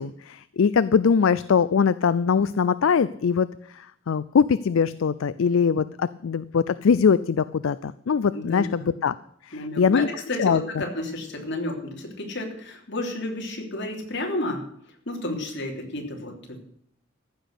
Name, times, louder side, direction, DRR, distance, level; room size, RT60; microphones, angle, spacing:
voice 1, 0.0-3.5 3.7-9.1 9.4-10.1 10.4-10.8, left 6 dB, 75° left, 16 dB, 0.4 m, -22 dB
voice 2, 8.3-8.9 9.5-10.0 10.3-14.6 15.0-16.6, left 1 dB, 60° left, 1 dB, 3.4 m, -31 dB
15.0 x 6.1 x 8.3 m, 0.68 s
head